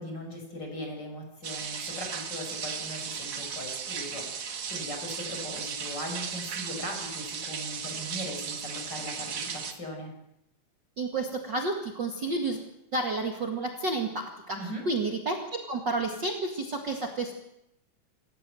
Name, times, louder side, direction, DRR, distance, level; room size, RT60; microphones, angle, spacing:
voice 1, 0.0-10.1 14.6-14.8, left 1 dB, 30° left, 2 dB, 6.5 m, -39 dB
sound 1, 1.4-9.7, right 6 dB, 55° right, 3.1 m, -36 dB
voice 2, 11.0-12.6 12.9-17.3, right 2 dB, 40° right, 2 dB, 2.2 m, -31 dB
27.5 x 14.5 x 7.7 m, 0.84 s
omnidirectional pair, 3.8 m